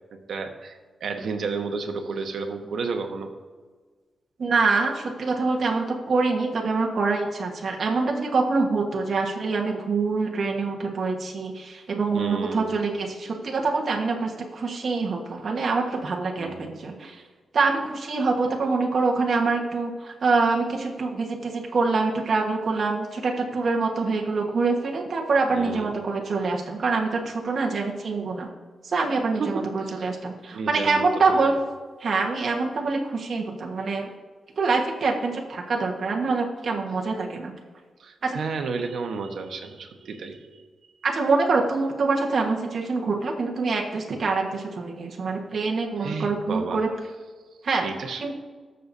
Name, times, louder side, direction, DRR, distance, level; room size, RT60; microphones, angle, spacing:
voice 1, 0.3-3.3 12.1-12.7 16.4-17.2 25.5-25.9 29.4-30.0 30.5-31.5 38.0-40.6 46.0-46.8 47.8-48.2, right 4 dB, 75° right, 5 dB, 1.2 m, -32 dB
voice 2, 4.4-17.2 17.5-28.5 28.8-31.5 32.0-34.1 34.6-37.5 38.2-38.4 41.0-46.9 47.6-47.9 48.2-48.3, right 4 dB, 50° right, 0 dB, 1.4 m, -25 dB
20.0 x 6.7 x 2.7 m, 1.5 s
wide cardioid pair, 150°, 0 cm